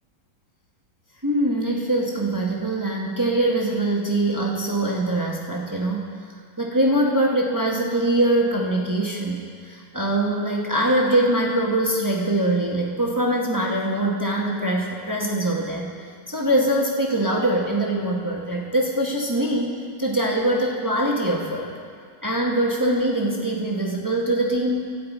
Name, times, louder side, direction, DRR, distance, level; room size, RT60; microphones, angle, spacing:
voice 1, 1.2-6.1 6.6-15.9 16.3-19.7 20.0-21.7 22.2-24.9, right 1 dB, 20° right, -2 dB, 0.5 m, -23 dB
13.5 x 9.6 x 4.1 m, 2.2 s
omnidirectional pair, 2.0 m